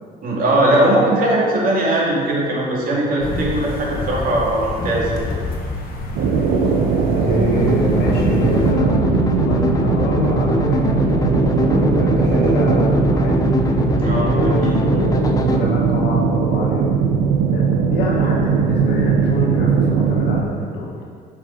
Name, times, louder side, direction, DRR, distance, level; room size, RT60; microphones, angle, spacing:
voice 1, 0.2-5.1 14.0-14.7, right 1 dB, 60° right, -4 dB, 2.0 m, -19 dB
sound 1, 3.2-8.7, left 2 dB, 60° left, 1.4 m, -28 dB
sound 2, 6.2-20.4, right 5 dB, 75° right, 0.7 m, -19 dB
voice 2, 7.2-9.0 9.5-13.5 14.3-15.0 15.4-16.8 17.5-21.0, left 1 dB, 85° left, -4 dB, 1.8 m, -26 dB
sound 3, 7.5-15.6, left 2 dB, 20° left, 0.6 m, -22 dB
7.0 x 5.2 x 4.4 m, 2.1 s
cardioid pair, 110°, 17 cm